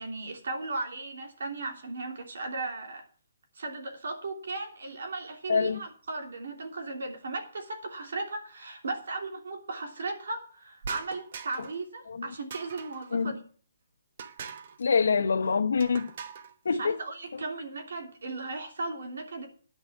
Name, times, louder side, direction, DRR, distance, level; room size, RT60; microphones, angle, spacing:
voice 1, 0.0-3.0 3.5-13.4 16.8-19.5, right 3 dB, 75° right, 2.9 m, -36 dB
voice 2, 5.5-5.8 12.1-12.3 13.1-13.3 14.8-16.1 16.6-17.0 17.3-17.4, left 5 dB, 80° left, 1.0 m, -25 dB
sound 1, 10.8-11.8 12.5-13.1 14.2-14.8 15.8-16.5, right 6 dB, 45° right, 1.0 m, -41 dB
10.5 x 5.5 x 8.3 m
hypercardioid pair, 165°, 0 cm